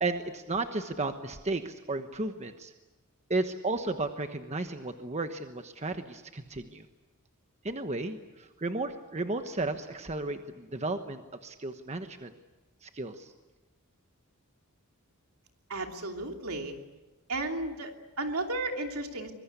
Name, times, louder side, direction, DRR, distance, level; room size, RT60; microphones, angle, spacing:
voice 1, 0.0-2.7 3.3-6.8 7.6-12.3 12.8-13.3, right 2 dB, 30° right, 7 dB, 1.2 m, -34 dB
voice 2, 15.7-16.7 17.3-19.3, right 2 dB, 75° right, 3 dB, 3.0 m, -34 dB
24.5 x 22.0 x 8.3 m, 1.1 s
head